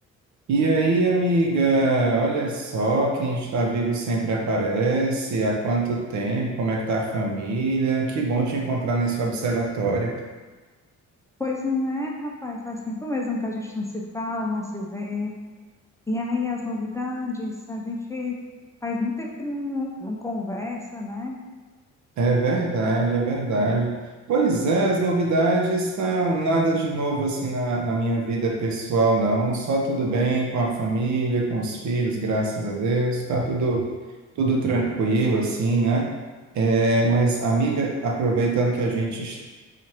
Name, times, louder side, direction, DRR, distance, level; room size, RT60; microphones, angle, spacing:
voice 1, 0.5-10.1 22.2-23.9 24.3-33.9 34.4-36.1 36.5-39.4, right 2 dB, 70° right, 0 dB, 0.7 m, -23 dB
voice 2, 11.4-15.3 16.1-18.4 18.8-21.4, left 2 dB, 10° left, -2 dB, 0.4 m, -29 dB
4.4 x 2.5 x 2.9 m, 1.3 s
cardioid pair, 90°, 30 cm